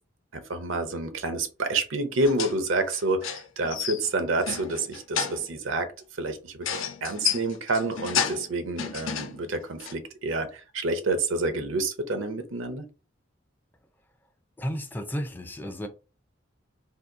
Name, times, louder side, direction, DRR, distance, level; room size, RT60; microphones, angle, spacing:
voice 1, 0.3-5.9 6.2-12.8, right 2 dB, 75° right, 0.6 m, -28 dB
sound 1, 2.2-2.6 2.9-4.1 4.4-5.5 6.6-8.5 8.8-9.4 9.8-9.9, left 7 dB, 75° left, 0.5 m, -31 dB
voice 2, 14.6-15.9, equal, 10° left, 0.4 m, -33 dB
2.8 x 2.6 x 3.5 m
head